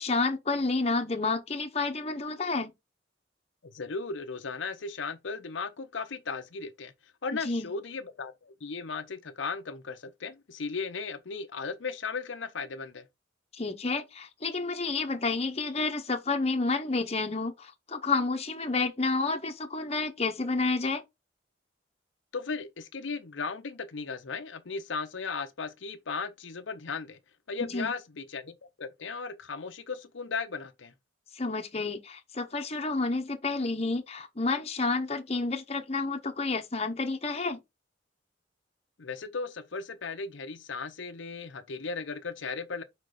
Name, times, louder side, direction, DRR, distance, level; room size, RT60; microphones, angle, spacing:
voice 1, 0.0-2.7 7.4-7.7 13.5-21.0 27.7-27.9 31.3-37.6, left 3 dB, 35° left, 0.9 m, -30 dB
voice 2, 3.6-6.9 7.2-13.1 22.3-27.2 27.5-30.9 39.0-42.8, left 4 dB, 80° left, 0.7 m, -36 dB
5.0 x 3.9 x 4.9 m
head